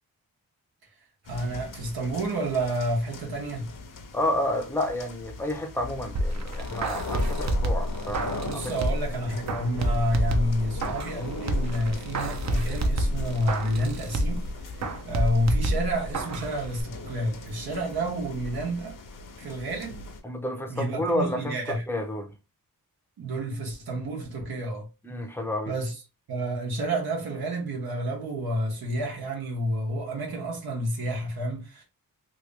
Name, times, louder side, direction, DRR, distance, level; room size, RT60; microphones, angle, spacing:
sound 1, 1.2-20.2, left 3 dB, 65° left, 0.8 m, -39 dB
voice 1, 1.2-3.7 8.4-14.4 14.7-19.0 19.4-19.9 20.7-21.8 23.2-24.9 25.7-25.9 26.3-31.8, right 1 dB, 90° right, 1.3 m, -29 dB
voice 2, 4.1-8.7 20.2-22.3 25.0-25.7, left 1 dB, 5° left, 0.6 m, -30 dB
sound 2, 6.1-9.1 9.5-11.2 11.5-14.5 14.8-16.5 16.8-16.9, right 1 dB, 50° right, 0.7 m, -28 dB
3.0 x 2.7 x 3.2 m
wide cardioid pair, 115°, 36 cm